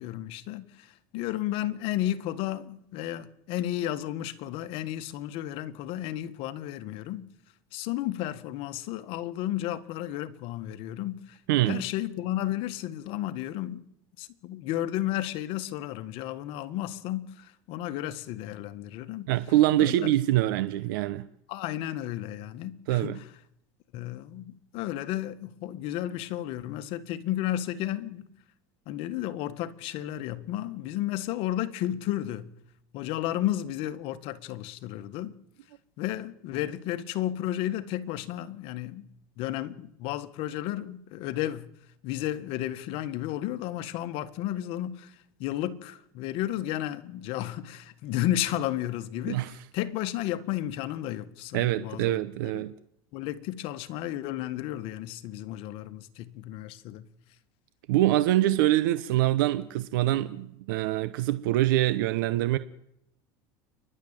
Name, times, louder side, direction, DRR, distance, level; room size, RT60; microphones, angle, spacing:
voice 1, 0.0-7.2 7.7-11.4 11.6-13.9 14.2-19.3 19.8-20.1 21.5-23.3 23.9-28.3 28.8-32.5 32.9-35.3 36.0-39.1 39.4-41.7 42.0-52.2 52.5-52.6 53.1-57.1, left 13 dB, 60° left, 1.6 m, -33 dB
voice 2, 11.5-11.8 19.3-21.3 22.9-23.2 49.2-49.5 51.5-52.7 57.9-62.6, right 15 dB, 80° right, 0.9 m, -24 dB
29.0 x 11.5 x 8.9 m
supercardioid pair, 130°, 11 cm